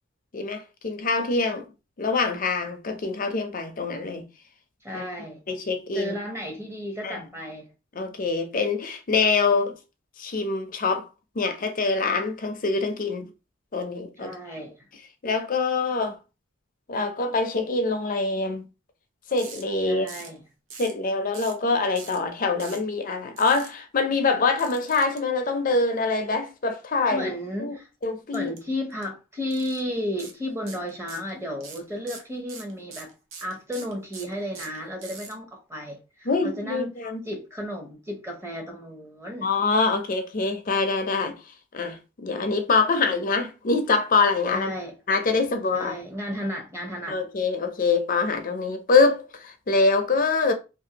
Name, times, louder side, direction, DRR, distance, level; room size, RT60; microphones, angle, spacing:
voice 1, 0.3-1.7 2.0-4.3 4.9-5.0 5.5-6.1 7.0-7.2 7.9-9.8 10.2-11.1 11.4-13.3 13.7-14.3 15.2-16.2 16.9-18.7 19.3-20.1 20.8-27.3 27.6-27.8 28.0-28.5 36.3-37.2 39.4-41.4 41.7-44.7 45.1-46.0 47.1-50.5, left 4 dB, 40° left, 0.5 m, -24 dB
voice 2, 4.8-5.4 5.9-7.7 14.2-14.7 19.8-20.4 27.1-27.9 28.3-33.1 33.4-36.9 37.2-39.5 44.5-44.9 45.7-47.2, equal, 15° right, 0.7 m, -33 dB
sound 1, 19.4-19.6 20.1-20.4 20.7-21.0 21.3-21.6 21.9-22.2 22.6-22.8 23.4-23.7 24.6-25.2 28.3-28.6 28.9-29.0 29.5-29.8 30.2-30.3 30.7-31.3 31.6-35.3, right 5 dB, 70° right, 0.7 m, -42 dB
2.7 x 2.6 x 2.8 m
head